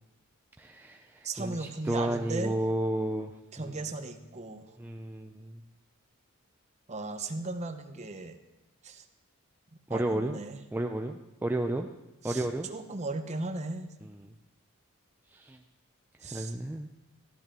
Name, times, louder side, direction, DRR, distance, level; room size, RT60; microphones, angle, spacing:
voice 1, 0.6-3.3 3.6-3.7 4.8-5.6 9.9-10.4 10.7-11.9 12.2-12.7 14.2-14.3 15.3-15.6 16.2-16.9, right 1 dB, 10° right, 3 dB, 0.4 m, -32 dB
voice 2, 1.2-2.5 3.5-4.7 6.9-8.4 8.8-9.0 9.9-10.6 12.2-13.9 16.2-16.5, right 3 dB, 30° right, 7 dB, 0.8 m, -37 dB
13.5 x 12.0 x 3.7 m, 0.99 s
head